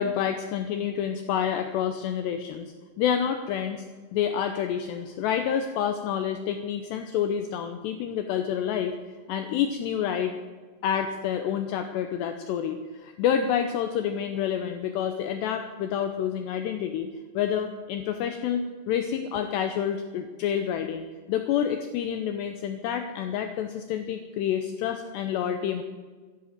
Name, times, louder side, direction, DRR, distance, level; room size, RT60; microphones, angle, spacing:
voice 1, 0.0-3.8 4.1-8.9 9.3-10.4 10.8-25.8, left 8 dB, 85° left, 7 dB, 2.4 m, -28 dB
13.0 x 11.0 x 7.9 m, 1.4 s
omnidirectional pair, 5.8 m